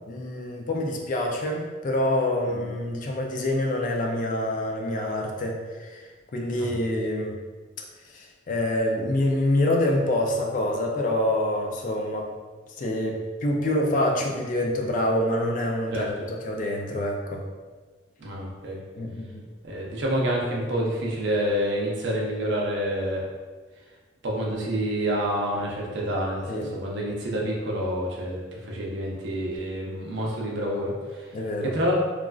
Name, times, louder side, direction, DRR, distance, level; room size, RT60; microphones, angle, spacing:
voice 1, 0.1-7.4 8.1-12.3 12.8-17.4 19.0-19.4 26.5-26.7 31.3-31.7, left 1 dB, 40° left, 1 dB, 0.3 m, -26 dB
voice 2, 18.2-18.8 19.6-23.2 24.2-31.2 31.7-32.0, equal, 65° right, -2 dB, 0.6 m, -28 dB
3.1 x 2.4 x 2.3 m, 1.4 s
head